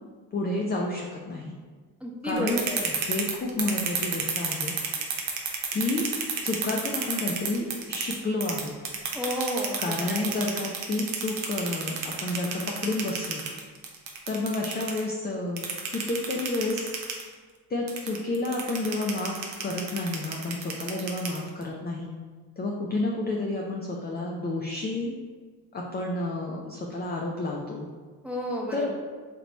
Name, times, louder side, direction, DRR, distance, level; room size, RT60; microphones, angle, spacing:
voice 1, 0.3-1.5 2.2-4.8 5.7-6.1 6.4-8.7 9.8-13.5 14.3-15.6 15.9-16.9 17.7-22.1 22.6-25.1 25.7-27.9 28.7-28.9, left 2 dB, 20° left, -1 dB, 0.4 m, -30 dB
voice 2, 2.0-2.8 9.1-10.3 28.2-28.9, equal, 5° right, -3 dB, 0.8 m, -31 dB
sound 1, 2.3-8.1 8.4-15.0 15.6-17.2 17.9-21.6, right 6 dB, 70° right, 0.7 m, -30 dB
2.9 x 2.2 x 3.9 m, 1.5 s
hypercardioid pair, 45°, 48 cm